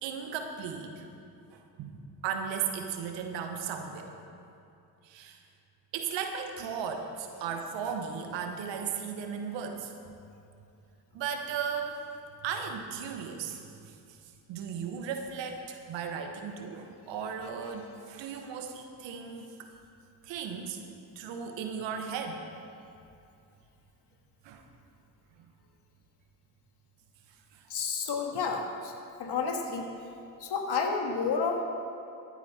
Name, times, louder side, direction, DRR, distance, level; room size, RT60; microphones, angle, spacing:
voice 1, 0.0-1.1 1.5-4.2 5.0-5.4 5.9-9.9 11.1-12.0 12.4-14.2 14.5-19.7 20.2-20.8 21.1-22.4 24.4-24.6 25.4-25.5 27.5-27.7, right 7 dB, 85° right, 5 dB, 1.1 m, -36 dB
voice 2, 27.7-28.9 29.2-29.9 30.4-31.6, left 5 dB, 65° left, 3 dB, 1.7 m, -30 dB
14.5 x 9.2 x 4.2 m, 2.6 s
supercardioid pair, 50°, 43 cm